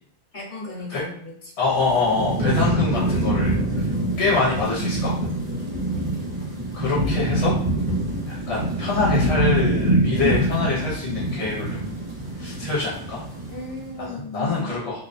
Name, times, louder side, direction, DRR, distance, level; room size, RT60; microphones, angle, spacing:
voice 1, 0.3-1.5 13.5-14.7, left 1 dB, 45° left, -6 dB, 1.1 m, -35 dB
voice 2, 1.6-3.9 4.2-5.1 6.7-7.6 8.3-11.9 12.4-13.2 14.0-15.1, left 4 dB, 70° left, -5 dB, 0.9 m, -25 dB
Thunderstorm / Rain, 1.7-13.9, right 1 dB, 50° right, 0.8 m, -25 dB
2.4 x 2.1 x 2.4 m, 0.62 s
omnidirectional pair, 1.2 m